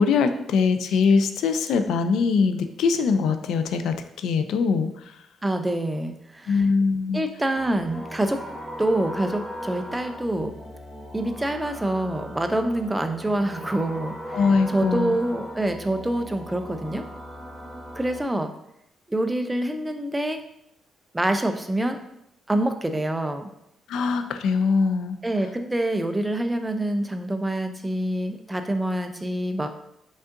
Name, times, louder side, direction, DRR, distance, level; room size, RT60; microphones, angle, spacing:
voice 1, 0.0-4.9 6.5-7.2 14.3-15.2 23.9-25.1, left 5 dB, 85° left, 9 dB, 0.3 m, -22 dB
voice 2, 5.4-6.7 7.1-8.4 8.8-10.5 11.1-17.0 17.9-18.5 19.1-20.4 21.1-22.0 22.5-23.5 25.2-29.7, right 1 dB, 10° right, 7 dB, 0.3 m, -26 dB
sound 1, 7.5-18.2, equal, 15° left, 1.0 m, -38 dB
5.1 x 3.6 x 2.5 m, 0.78 s
cardioid pair, 170°, 0 cm